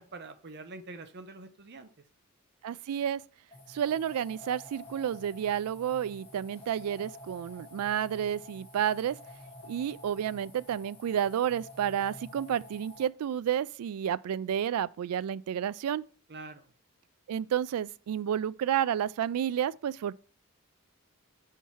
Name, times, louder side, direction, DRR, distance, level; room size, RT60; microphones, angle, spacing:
voice 1, 0.0-1.9 16.3-16.7, right 3 dB, 50° right, 0.7 m, -45 dB
voice 2, 2.6-3.2 3.7-9.2 9.7-16.0 17.3-20.1, right 9 dB, 80° right, 0.3 m, -31 dB
sound 1, 3.5-13.1, left 1 dB, 25° left, 1.2 m, -50 dB
4.7 x 4.6 x 5.5 m
head